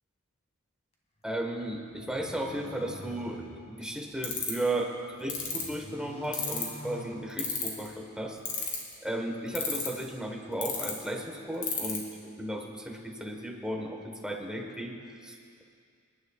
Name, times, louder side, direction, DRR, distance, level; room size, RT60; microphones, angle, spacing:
voice 1, 1.2-4.9 5.2-8.4 9.0-12.0 12.4-14.9 15.2-15.6, right 1 dB, 5° right, 1 dB, 1.2 m, -35 dB
sound 1, 1.9-4.5 5.0-7.8, left 1 dB, 30° left, 2.0 m, -47 dB
sound 2, 4.2-4.6 5.3-5.6 6.3-6.7 7.4-7.9 8.4-8.9 9.5-10.0 10.6-10.9 11.6-12.0, left 9 dB, 75° left, 2.7 m, -30 dB
28.0 x 11.5 x 2.4 m, 2.3 s
head